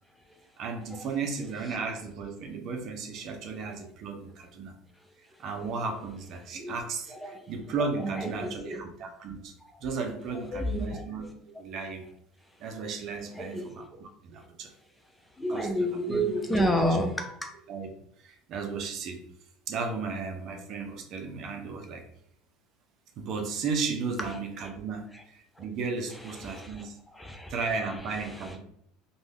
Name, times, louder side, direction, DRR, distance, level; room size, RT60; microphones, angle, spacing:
voice 1, 0.6-4.8 5.4-9.5 9.8-11.3 11.6-12.1 12.6-14.7 15.5-16.2 17.7-17.9 18.2-19.2 19.7-22.0 23.2-27.0 27.5-28.6, right 4 dB, 50° right, 4 dB, 0.6 m, -35 dB
voice 2, 7.1-7.5 7.8-8.8 10.3-11.0 13.3-13.8 15.3-17.5 24.2-24.3 24.6-24.7 25.1-25.2 25.6-25.7 26.1-26.9 27.1-27.5 27.9-28.6, equal, 10° left, 4 dB, 0.4 m, -31 dB
2.5 x 2.2 x 3.4 m, 0.70 s
supercardioid pair, 120°, 0 cm